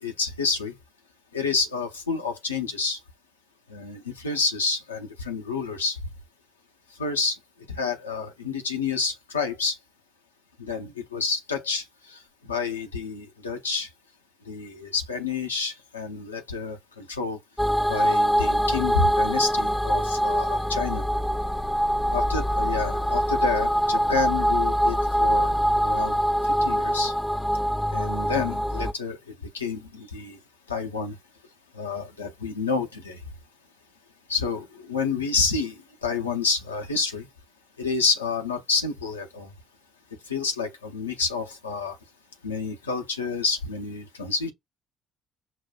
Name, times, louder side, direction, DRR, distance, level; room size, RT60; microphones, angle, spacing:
voice 1, 0.0-0.7 1.3-3.0 3.7-6.0 7.0-7.4 7.7-9.8 10.6-12.2 12.5-13.9 14.5-17.4 17.9-21.0 22.1-25.5 25.8-27.1 27.9-29.2 29.5-30.4 30.7-31.1 31.7-33.2 34.3-35.7 36.0-37.3 37.8-39.5 40.3-42.0 42.4-44.5, left 4 dB, 85° left, 0.6 m, -29 dB
sound 1, 17.6-28.9, equal, 5° left, 0.4 m, -24 dB
5.8 x 2.2 x 2.2 m
figure-of-eight pair, 50°, 0 cm